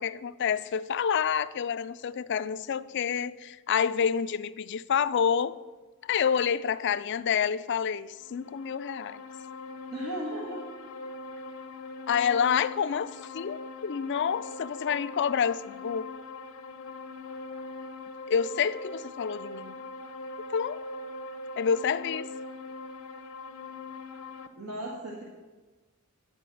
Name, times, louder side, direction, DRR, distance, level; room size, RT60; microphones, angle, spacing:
voice 1, 0.0-5.6 6.0-9.2 12.1-16.1 18.3-19.8 20.5-20.8 21.6-22.3, left 7 dB, 55° left, 0.4 m, -28 dB
sound 1, 8.2-24.5, left 2 dB, 80° left, 0.8 m, -41 dB
voice 2, 9.9-10.6 12.3-12.4 24.5-25.2, right 1 dB, 90° right, 1.7 m, -36 dB
10.0 x 5.3 x 7.7 m
head